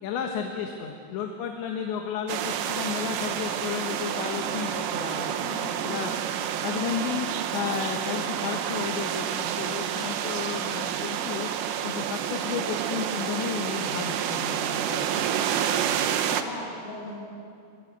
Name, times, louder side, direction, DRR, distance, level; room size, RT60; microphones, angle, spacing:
voice 1, 0.0-5.3 5.8-6.1 6.6-11.5 11.8-15.3 15.8-16.1, left 7 dB, 85° left, 3 dB, 3.8 m, -33 dB
sound 1, 2.3-16.4, right 9 dB, 80° right, 3.3 m, -29 dB
voice 2, 4.2-4.8 5.4-6.3 15.1-15.9 16.2-17.2, left 1 dB, 35° left, -5 dB, 8.9 m, -40 dB
25.5 x 24.5 x 8.2 m, 2.4 s
omnidirectional pair, 5.0 m